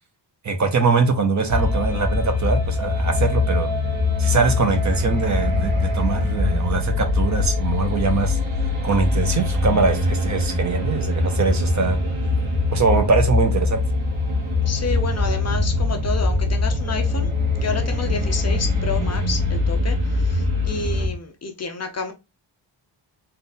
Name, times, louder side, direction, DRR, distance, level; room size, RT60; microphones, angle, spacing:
voice 1, 0.4-3.7 4.2-8.4 8.8-12.0 12.7-13.8, right 4 dB, 40° right, 0.7 m, -22 dB
sound 1, 1.5-21.1, left 2 dB, 90° right, 1.5 m, -22 dB
voice 2, 14.7-22.1, left 4 dB, 35° left, 0.6 m, -30 dB
3.8 x 2.5 x 3.9 m
wide cardioid pair, 180°, 46 cm